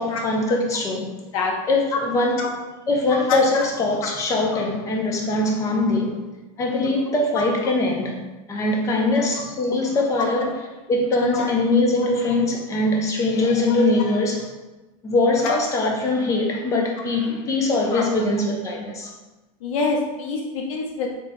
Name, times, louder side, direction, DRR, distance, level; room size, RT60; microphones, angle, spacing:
voice 1, 0.0-1.1 1.7-2.5 2.9-6.2 6.6-8.2 8.5-10.5 10.9-14.5 15.0-19.1, left 2 dB, 15° left, 0 dB, 0.6 m, -22 dB
voice 2, 19.6-21.1, left 4 dB, 70° left, 0 dB, 0.8 m, -25 dB
3.4 x 2.7 x 4.2 m, 1.1 s
supercardioid pair, 155°, 18 cm